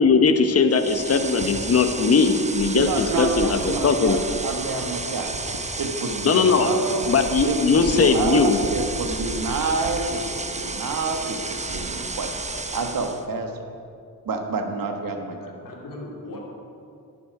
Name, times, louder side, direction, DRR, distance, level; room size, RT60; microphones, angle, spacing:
voice 1, 0.0-4.2 6.2-6.7 7.1-8.6, left 5 dB, 40° left, 8 dB, 0.9 m, -19 dB
sound 1, 0.7-13.2, right 3 dB, 20° right, 0.8 m, -32 dB
sound 2, 1.4-11.3, right 2 dB, 80° right, 1.8 m, -40 dB
voice 2, 2.7-5.3 5.8-7.0 7.4-12.3 12.7-13.6 14.2-15.4, right 3 dB, 60° right, 5 dB, 1.5 m, -28 dB
voice 3, 15.1-16.4, left 2 dB, 55° left, -2 dB, 2.9 m, -40 dB
11.5 x 10.0 x 4.8 m, 2.5 s
cardioid pair, 65°, 39 cm